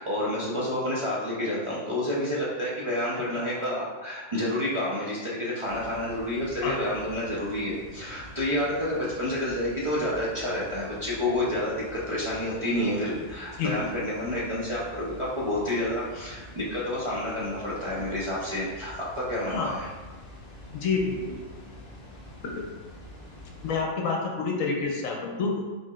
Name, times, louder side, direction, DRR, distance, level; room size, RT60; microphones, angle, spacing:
voice 1, 0.0-19.9, left 1 dB, 30° right, -8 dB, 0.6 m, -29 dB
Water, 5.6-23.8, left 1 dB, 40° left, 0.6 m, -46 dB
voice 2, 20.7-21.4 23.6-25.6, left 4 dB, 70° left, 0 dB, 1.1 m, -28 dB
4.8 x 4.3 x 2.4 m, 1.4 s
omnidirectional pair, 1.5 m